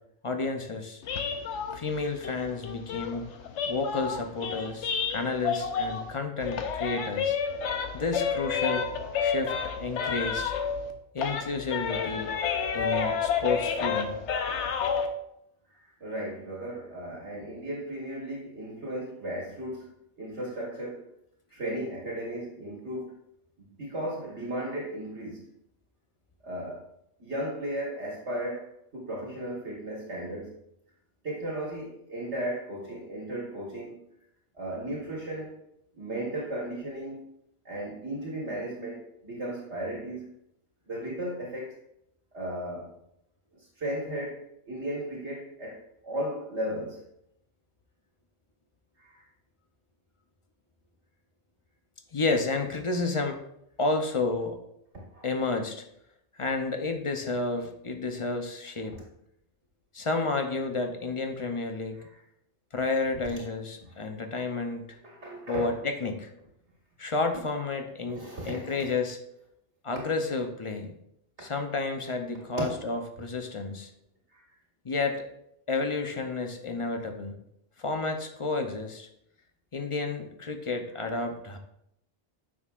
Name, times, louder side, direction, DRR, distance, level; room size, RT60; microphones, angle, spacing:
voice 1, 0.2-1.0 1.7-3.3 3.7-7.4 7.9-8.9 9.2-9.5 9.8-10.5 11.1-12.3 12.7-14.2 52.1-53.4 53.8-54.6 55.2-55.8 56.4-59.0 59.9-62.0 62.7-64.8 65.5-66.3 67.0-69.2 69.8-71.0 71.4-73.9 74.8-75.2 75.7-77.4 77.8-79.1 79.7-81.6, left 3 dB, 35° left, 5 dB, 0.6 m, -31 dB
sound 1, 1.0-6.1 6.4-10.9 11.2-15.1, left 6 dB, 75° left, 1.0 m, -30 dB
voice 2, 15.7-21.0 21.5-23.1 23.6-25.5 26.4-26.8 27.2-30.5 31.2-34.0 34.5-35.6 36.0-37.3 37.7-40.3 40.9-41.8 42.3-42.9 43.6-44.4 44.7-47.0 49.0-49.2 55.1-55.3 58.8-59.0 61.9-62.2 63.8-63.9 65.0-65.8 67.0-67.4 68.1-68.9 72.6-72.7 74.3-74.4, right 1 dB, 65° right, -4 dB, 1.8 m, -35 dB
9.4 x 6.1 x 2.4 m, 0.77 s
omnidirectional pair, 1.2 m